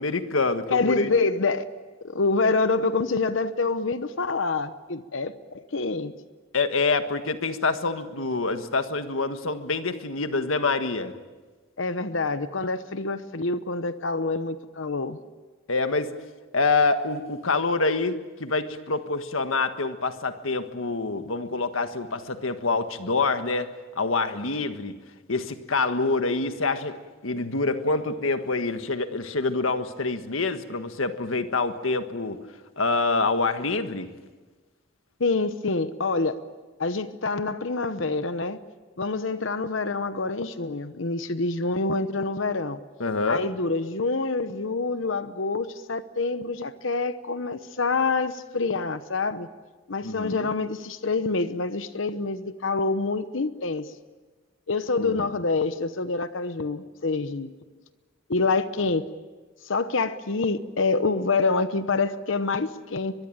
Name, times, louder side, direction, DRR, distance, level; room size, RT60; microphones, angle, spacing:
voice 1, 0.0-1.1 6.5-11.2 15.7-16.2 16.5-25.0 25.3-32.4 32.8-34.1 43.0-43.5 50.0-50.5 55.0-55.1, left 3 dB, 90° left, 1.6 m, -26 dB
voice 2, 0.7-1.7 2.0-6.1 11.8-15.2 35.2-36.4 36.8-38.6 39.0-42.8 43.3-49.5 49.9-53.9 54.7-57.5 58.3-59.0 59.6-63.1, left 3 dB, 70° left, 0.9 m, -26 dB
23.5 x 22.0 x 8.8 m
head